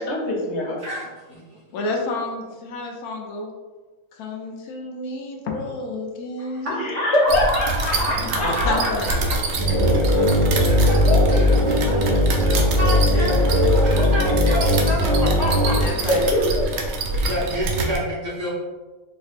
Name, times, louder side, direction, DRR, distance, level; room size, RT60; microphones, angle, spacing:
voice 1, 0.0-0.8 6.7-9.0 13.1-13.3 16.0-16.7 17.1-17.2, left 1 dB, 55° left, -2 dB, 1.0 m, -23 dB
voice 2, 0.8-1.6 6.4-8.9 9.7-16.1 17.1-18.5, equal, 60° right, -6 dB, 1.0 m, -29 dB
voice 3, 1.7-3.5 4.1-6.9 8.4-9.5 15.8-16.4, left 2 dB, 85° left, 0 dB, 1.1 m, -30 dB
sound 1, 7.3-18.0, right 3 dB, 80° right, 1.1 m, -27 dB
sound 2, 9.6-15.9, left 1 dB, 10° right, 1.1 m, -18 dB
4.4 x 2.5 x 2.4 m, 1.3 s
omnidirectional pair, 1.6 m